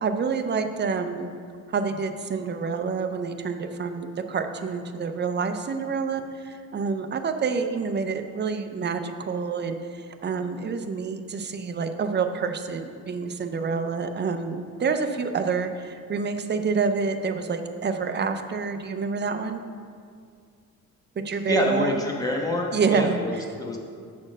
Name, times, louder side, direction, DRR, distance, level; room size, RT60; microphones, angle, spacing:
voice 1, 0.0-1.3 1.7-19.6 21.2-22.0 22.7-23.2, right 5 dB, 35° right, 7 dB, 0.5 m, -28 dB
voice 2, 21.5-23.8, left 1 dB, 10° left, 0 dB, 1.0 m, -26 dB
7.6 x 4.3 x 6.1 m, 2.2 s
cardioid pair, 125°, 32 cm